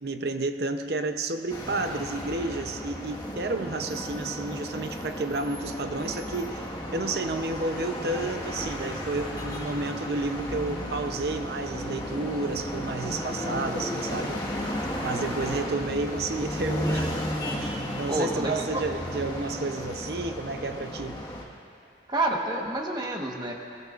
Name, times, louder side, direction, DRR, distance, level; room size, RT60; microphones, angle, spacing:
voice 1, 0.0-14.7 15.0-17.3 17.6-21.2, right 3 dB, 65° right, 7 dB, 0.7 m, -31 dB
sound 1, 1.5-21.4, equal, 20° left, 1.5 m, -34 dB
voice 2, 18.1-18.8 22.1-23.5, right 2 dB, 25° right, 0 dB, 1.2 m, -29 dB
21.5 x 21.0 x 2.5 m, 2.6 s
head